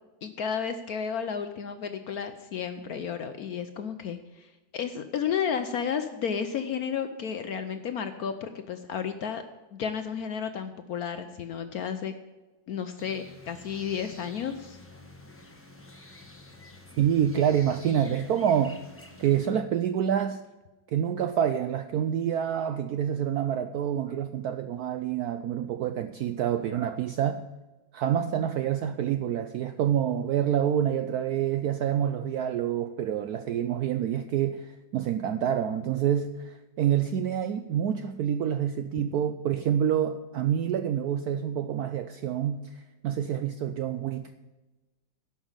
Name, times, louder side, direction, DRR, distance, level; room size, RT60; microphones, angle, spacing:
voice 1, 0.2-9.4 9.7-12.1 12.7-14.8, left 7 dB, 70° left, 9 dB, 0.9 m, -32 dB
sound 1, 13.0-19.5, left 2 dB, 10° left, 0.7 m, -48 dB
voice 2, 17.0-18.8 19.2-20.4 20.9-27.4 27.9-44.3, right 9 dB, 80° right, 10 dB, 0.8 m, -27 dB
11.0 x 5.9 x 8.8 m, 1.1 s
omnidirectional pair, 2.1 m